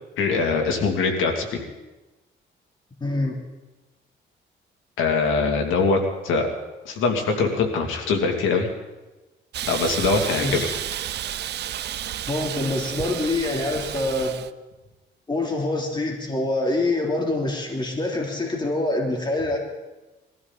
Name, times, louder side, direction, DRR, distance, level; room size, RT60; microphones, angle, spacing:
voice 1, 0.2-1.6 5.0-6.0 6.2-6.5 6.8-8.7 9.7-10.6, left 4 dB, 80° left, 3 dB, 2.7 m, -22 dB
voice 2, 3.0-3.3 10.4-10.8 12.3-14.3 15.3-19.6, left 2 dB, 20° left, 0 dB, 3.3 m, -25 dB
Hiss, 9.5-14.5, right 11 dB, 60° right, 0.6 m, -31 dB
22.0 x 14.5 x 4.1 m, 1.1 s
cardioid pair, 90°, 20 cm